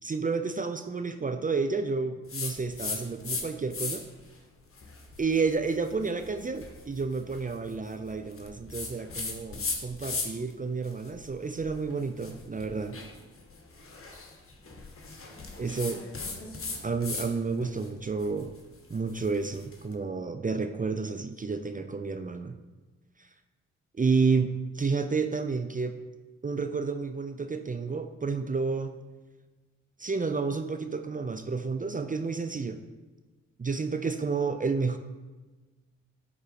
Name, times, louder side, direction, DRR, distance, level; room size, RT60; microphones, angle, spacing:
voice 1, 0.0-4.0 5.2-13.0 15.6-16.0 16.8-18.5 18.9-22.6 23.2-23.3 23.9-24.5 24.7-25.9 26.4-28.9 30.0-32.8 33.6-35.0, right 4 dB, 25° right, 8 dB, 0.7 m, -30 dB
sound 1, 2.3-3.4 3.7-4.2 4.7-10.5 10.8-17.3 17.6-19.8, left 4 dB, 45° left, 1.7 m, -38 dB
11.0 x 4.1 x 4.7 m, 1.2 s
supercardioid pair, 45°, 32 cm